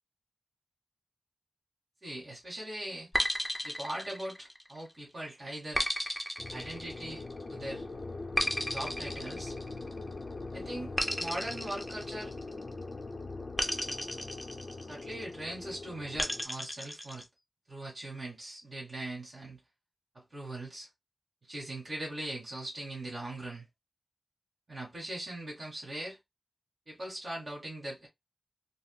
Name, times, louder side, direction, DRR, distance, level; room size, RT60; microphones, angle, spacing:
voice 1, 2.0-3.1 3.6-5.8 6.5-7.2 7.5-7.9 8.7-9.5 10.5-12.3 14.9-17.2 17.7-19.6 20.1-20.9 21.5-23.7 24.7-26.2 26.9-28.1, right 1 dB, 60° right, 1.8 m, -40 dB
sound 1, 3.1-4.8 5.8-7.4 8.4-10.1 11.0-12.7 13.6-15.1 16.2-17.2, equal, ahead, 0.8 m, -34 dB
sound 2, 6.4-16.4, left 3 dB, 55° left, 0.7 m, -42 dB
4.0 x 2.0 x 2.2 m
wide cardioid pair, 60°, 0 cm